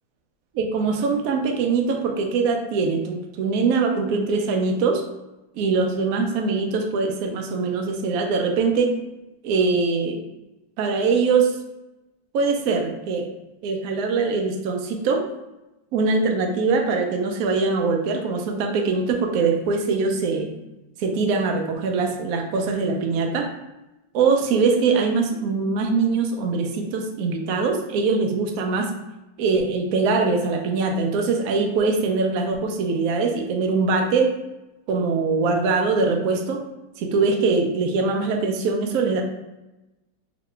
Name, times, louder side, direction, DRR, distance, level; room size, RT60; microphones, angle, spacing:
voice 1, 0.5-5.0 5.6-8.9 9.4-10.2 10.8-11.5 12.3-13.3 13.6-15.2 15.9-20.5 21.0-23.5 24.1-28.9 29.4-34.3 34.9-36.6 37.0-39.2, right 4 dB, 85° right, 3 dB, 0.7 m, -22 dB
3.0 x 2.9 x 3.2 m, 1.0 s
omnidirectional pair, 2.1 m